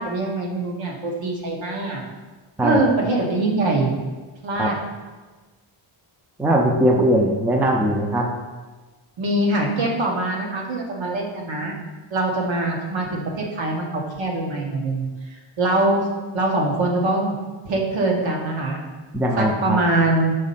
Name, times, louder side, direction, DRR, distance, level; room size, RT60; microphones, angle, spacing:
voice 1, 0.0-2.0 2.6-3.9 4.4-4.7 9.2-11.7 12.1-13.9 14.2-15.1 15.6-16.1 16.3-17.3 17.6-18.8 19.3-20.3, right 2 dB, 65° right, 0 dB, 1.4 m, -23 dB
voice 2, 6.4-8.3 19.1-19.8, right 1 dB, 5° right, 1 dB, 0.4 m, -19 dB
6.2 x 4.1 x 5.6 m, 1.3 s
wide cardioid pair, 175°, 49 cm